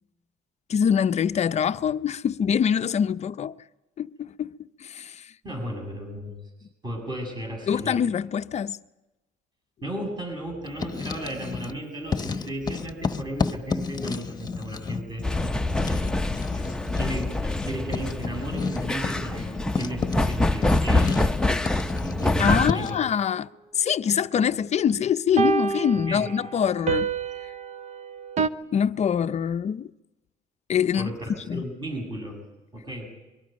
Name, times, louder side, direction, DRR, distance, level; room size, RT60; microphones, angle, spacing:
voice 1, 0.7-3.5 4.0-4.5 4.8-5.3 7.7-8.8 22.4-23.5 23.7-27.1 28.7-29.9 30.7-31.1 31.5-31.6, left 8 dB, 40° left, 0.6 m, -24 dB
voice 2, 5.4-6.4 6.8-8.0 9.8-15.3 15.8-16.1 16.5-17.3 17.6-21.4 22.0-23.0 26.1-26.3 31.0-32.4 32.7-33.1, right 1 dB, 25° right, 7.2 m, -35 dB
Writing, 10.7-11.8 12.1-23.1, left 5 dB, 25° left, 1.2 m, -32 dB
sound 1, 15.2-22.7, left 1 dB, 5° left, 0.7 m, -25 dB
sound 2, 21.1-21.2 25.4-28.5, right 5 dB, 45° right, 0.9 m, -28 dB
23.5 x 23.0 x 5.3 m
cardioid pair, 110°, 17 cm